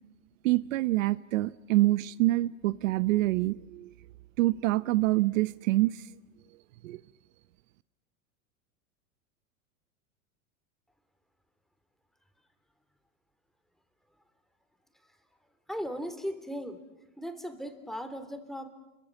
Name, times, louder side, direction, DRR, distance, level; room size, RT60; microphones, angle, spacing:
voice 1, 0.4-3.9 4.4-6.1 6.8-7.0, right 18 dB, 70° right, 17 dB, 0.8 m, -26 dB
voice 2, 15.7-16.8 17.2-18.7, equal, ahead, 8 dB, 3.2 m, -37 dB
29.5 x 23.0 x 7.4 m, 1.0 s
hypercardioid pair, 115°, 41 cm